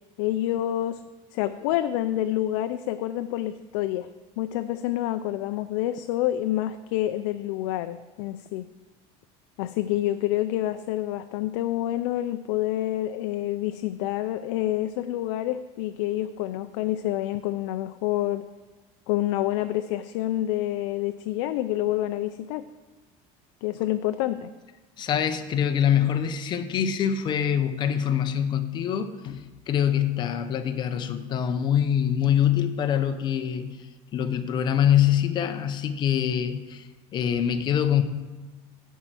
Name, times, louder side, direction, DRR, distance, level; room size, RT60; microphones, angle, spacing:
voice 1, 0.2-1.0 1.3-4.1 4.4-8.7 9.6-18.4 19.1-22.6 23.6-24.5, left 13 dB, 90° left, 9 dB, 0.4 m, -28 dB
voice 2, 25.0-33.8 34.1-36.8 37.1-38.0, left 9 dB, 30° left, 8 dB, 0.7 m, -24 dB
10.5 x 4.6 x 7.5 m, 1.2 s
cardioid pair, 165°, 15 cm